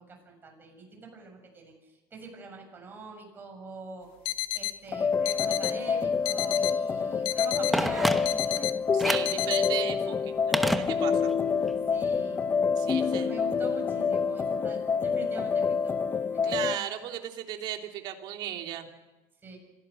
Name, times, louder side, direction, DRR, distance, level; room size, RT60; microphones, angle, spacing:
voice 1, 0.0-4.1 4.5-8.7 11.9-12.4 12.8-15.9 16.3-16.6 19.4-19.6, right 3 dB, 20° right, 2 dB, 7.6 m, -44 dB
sound 1, 4.3-4.8 5.3-5.8 6.3-6.8 7.3-7.8 8.3-8.8 9.3-9.7, left 16 dB, 65° left, 1.0 m, -32 dB
sound 2, 4.9-16.8, left 5 dB, 25° left, 0.7 m, -27 dB
Telephone, 7.7-8.6 9.0-9.4 10.5-11.4 11.7-11.8, equal, ahead, 1.0 m, -29 dB
voice 2, 8.9-11.4 12.8-13.3 16.4-18.9, right 11 dB, 55° right, 4 dB, 2.9 m, -36 dB
26.0 x 17.0 x 6.8 m, 1.1 s
supercardioid pair, 130°, 9 cm